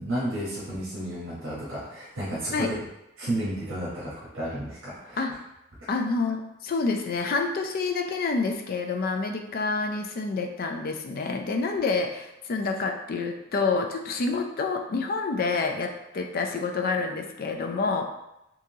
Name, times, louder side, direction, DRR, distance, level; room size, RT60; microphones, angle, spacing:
voice 1, 0.0-2.8 3.2-5.2, right 1 dB, 85° right, -8 dB, 1.0 m, -32 dB
voice 2, 5.9-18.0, left 4 dB, 50° left, 4 dB, 0.4 m, -28 dB
3.6 x 2.8 x 2.7 m, 0.88 s
head